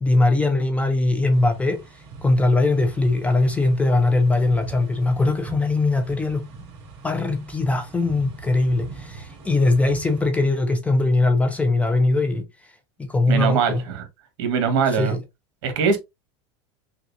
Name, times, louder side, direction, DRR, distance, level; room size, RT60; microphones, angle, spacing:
voice 1, 0.0-1.8 2.2-6.5 7.0-12.5 13.0-13.8 14.9-15.2, left 2 dB, 10° left, 0.6 m, -21 dB
sound 1, 1.3-10.2, right 4 dB, 50° right, 2.4 m, -42 dB
voice 2, 13.3-14.0 14.4-15.1 15.6-16.0, right 6 dB, 65° right, 1.4 m, -21 dB
6.1 x 2.4 x 2.6 m
supercardioid pair, 145°, 15 cm